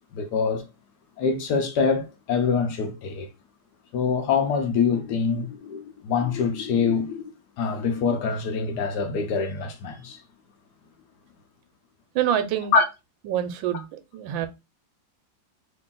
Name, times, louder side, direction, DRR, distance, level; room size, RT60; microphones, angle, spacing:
voice 1, 0.1-0.6 1.2-3.3 3.9-10.2 12.7-12.8, left 5 dB, 70° left, 1.1 m, -25 dB
voice 2, 12.1-12.7 13.2-14.5, right 10 dB, 90° right, 1.4 m, -26 dB
3.2 x 2.6 x 3.7 m
omnidirectional pair, 2.1 m